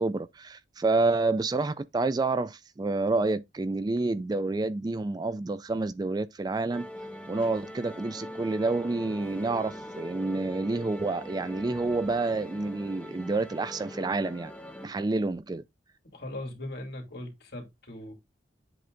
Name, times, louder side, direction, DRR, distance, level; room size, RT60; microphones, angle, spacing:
voice 1, 0.0-6.9 7.3-14.5 14.8-15.6, right 3 dB, 20° right, 0.3 m, -28 dB
sound 1, 6.7-14.9, equal, 5° left, 0.8 m, -42 dB
voice 2, 16.1-18.1, left 1 dB, 60° left, 2.5 m, -39 dB
7.7 x 3.3 x 3.8 m
head